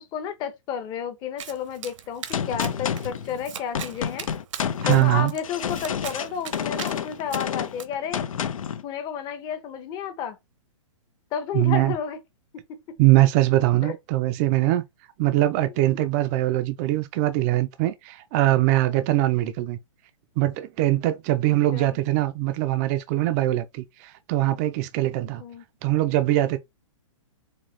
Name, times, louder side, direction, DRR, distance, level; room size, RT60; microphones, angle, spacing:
voice 1, 0.0-4.3 4.8-8.3 8.8-10.4 11.3-12.2 12.5-13.0 13.8-13.9 15.6-16.0 21.4-22.0 25.4-25.6, left 8 dB, 25° left, 0.7 m, -32 dB
Domestic sounds home sounds, 1.4-7.8, right 9 dB, 70° right, 0.8 m, -41 dB
Gunshot gunfire, 2.3-8.8, left 8 dB, 85° left, 0.6 m, -29 dB
voice 2, 4.8-5.3 11.5-11.9 13.0-14.8 15.2-19.8 20.4-25.4 25.8-26.6, right 16 dB, 30° right, 0.4 m, -22 dB
4.0 x 2.8 x 3.1 m
hypercardioid pair, 145°, 17 cm